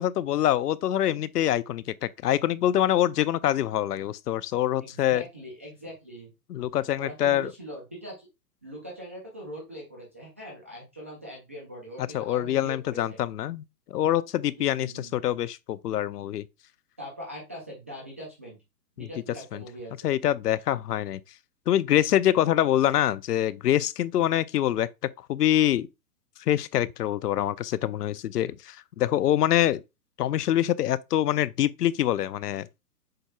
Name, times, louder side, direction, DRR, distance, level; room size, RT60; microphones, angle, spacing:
voice 1, 0.0-5.2 6.5-7.5 12.1-13.6 13.9-16.4 19.0-19.1 19.5-19.6 20.0-21.2 21.7-24.9 25.3-25.9 26.5-29.8 30.2-32.7, left 12 dB, 75° left, 0.6 m, -25 dB
voice 2, 4.8-6.3 7.0-8.3 8.6-13.0 14.6-15.2 17.0-18.6 19.0-19.9, equal, 10° right, 0.3 m, -41 dB
7.8 x 5.7 x 2.3 m
hypercardioid pair, 135°, 47 cm